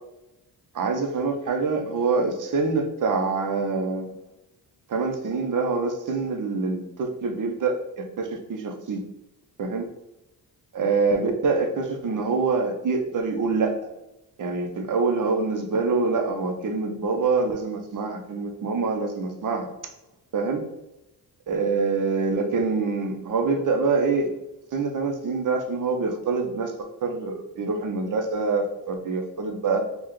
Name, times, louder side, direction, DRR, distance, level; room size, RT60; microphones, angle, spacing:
voice 1, 0.7-4.1 4.9-9.0 9.6-9.9 10.7-13.7 14.4-19.7 20.3-20.6 21.5-24.3 24.7-26.7 27.0-29.8, right 4 dB, 50° right, 4 dB, 0.7 m, -25 dB
4.7 x 2.4 x 3.1 m, 0.92 s
cardioid pair, 85°, 41 cm